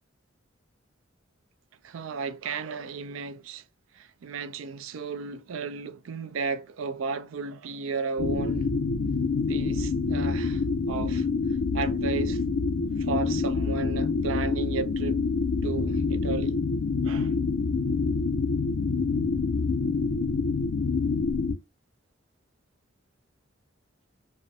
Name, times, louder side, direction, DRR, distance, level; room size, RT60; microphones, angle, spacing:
voice 1, 1.8-3.6 3.9-8.7 9.5-11.3 11.7-12.4 13.0-15.2 15.6-16.6 17.0-17.3, right 5 dB, 75° right, 0.4 m, -34 dB
sound 1, 8.2-21.5, left 4 dB, 80° left, 0.4 m, -26 dB
2.5 x 2.0 x 2.6 m
head